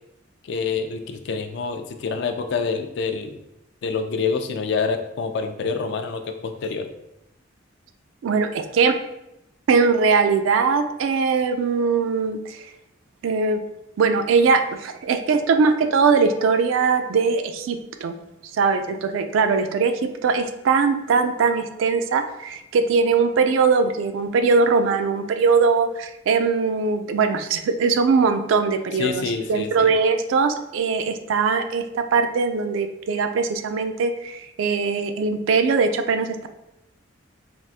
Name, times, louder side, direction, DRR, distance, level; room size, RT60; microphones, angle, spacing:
voice 1, 0.5-3.4 3.8-6.9 29.0-29.9, left 5 dB, 60° left, 7 dB, 0.3 m, -27 dB
voice 2, 8.2-9.0 9.7-12.6 13.2-13.6 14.0-18.2 18.5-29.2 29.5-36.5, right 5 dB, 80° right, 8 dB, 0.3 m, -21 dB
3.4 x 2.4 x 2.7 m, 0.85 s
head